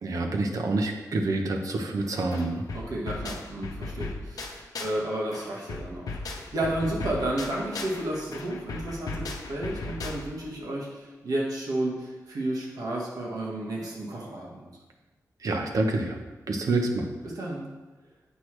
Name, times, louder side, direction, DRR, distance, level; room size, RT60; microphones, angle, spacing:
voice 1, 0.0-2.6 15.4-17.1, right 2 dB, 70° right, 3 dB, 0.9 m, -27 dB
sound 1, 2.0-2.1 2.3-5.0 5.3-10.5, left 3 dB, 85° left, 0.8 m, -37 dB
voice 2, 2.7-14.7 17.2-17.7, right 1 dB, 90° right, -3 dB, 1.6 m, -32 dB
8.2 x 6.0 x 3.3 m, 1.2 s
wide cardioid pair, 130°, 6 cm